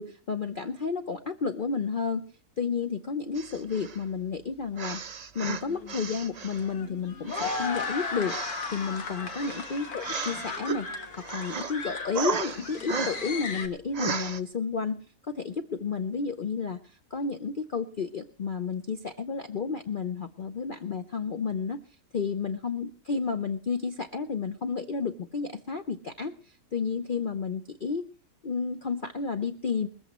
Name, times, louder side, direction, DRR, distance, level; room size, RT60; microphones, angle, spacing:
voice 1, 0.0-2.3 2.6-5.0 5.3-10.9 11.3-21.8 22.1-28.1 28.4-29.9, left 5 dB, 45° left, 6 dB, 0.7 m, -31 dB
sound 1, 3.4-4.0 4.8-6.7 7.3-10.8 11.1-11.7 12.1-13.4 13.9-14.4, right 5 dB, 45° right, 0.5 m, -35 dB
sound 2, 5.7-13.7, left 4 dB, 70° left, 1.9 m, -36 dB
20.0 x 14.5 x 3.1 m, 0.36 s
omnidirectional pair, 1.6 m